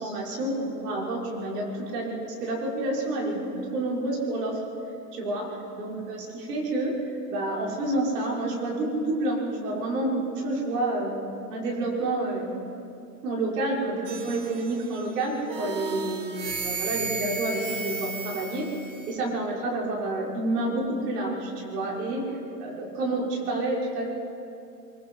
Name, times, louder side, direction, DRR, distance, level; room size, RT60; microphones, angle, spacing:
voice 1, 0.0-4.6 5.1-5.4 5.7-6.9 7.3-11.1 11.5-12.5 13.2-18.7 19.1-22.2 22.6-24.1, right 2 dB, 70° right, -3 dB, 5.9 m, -29 dB
sound 1, 14.0-15.0 15.5-19.1, right 5 dB, 40° right, 2.5 m, -34 dB
24.0 x 23.0 x 4.8 m, 2.6 s
hypercardioid pair, 130°, 50 cm